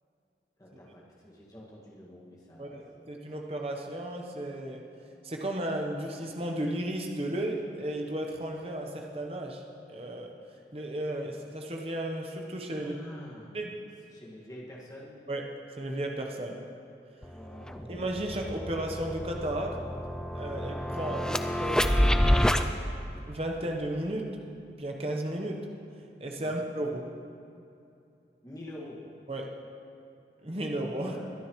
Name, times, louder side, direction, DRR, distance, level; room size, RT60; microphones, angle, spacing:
voice 1, 0.6-3.1 12.8-13.6 14.1-15.1 17.3-17.9 26.4-26.6 28.4-29.0 31.0-31.3, left 1 dB, 20° left, -5 dB, 1.8 m, -47 dB
voice 2, 2.6-4.8 5.2-9.6 9.9-10.3 10.7-12.9 13.5-13.8 15.3-15.4 15.7-16.6 17.9-19.8 20.3-22.6 23.1-24.3 24.7-25.7 26.2-27.1 29.3-29.6 30.4-31.2, right 1 dB, 35° right, 1 dB, 0.9 m, -34 dB
sound 1, 17.2-17.3 17.7-22.6, equal, 5° left, 0.3 m, -28 dB
21.5 x 10.0 x 3.1 m, 2.6 s
head